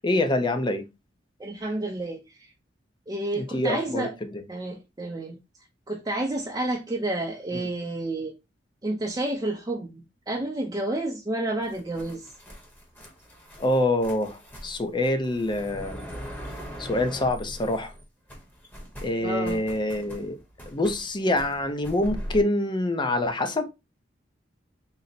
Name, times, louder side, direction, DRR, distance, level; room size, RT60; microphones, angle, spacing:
voice 1, 0.0-0.8 3.3-4.4 7.5-7.7 13.6-16.1 16.8-17.9 19.0-20.4 20.7-23.7, left 1 dB, 25° left, 0.6 m, -26 dB
voice 2, 1.4-2.5 3.1-4.1 4.5-5.4 5.9-8.3 8.8-12.3 19.2-19.7, right 2 dB, 20° right, 0.5 m, -30 dB
sound 1, 11.6-18.0 18.3-22.4, equal, 10° left, 0.9 m, -41 dB
3.9 x 2.1 x 4.0 m
head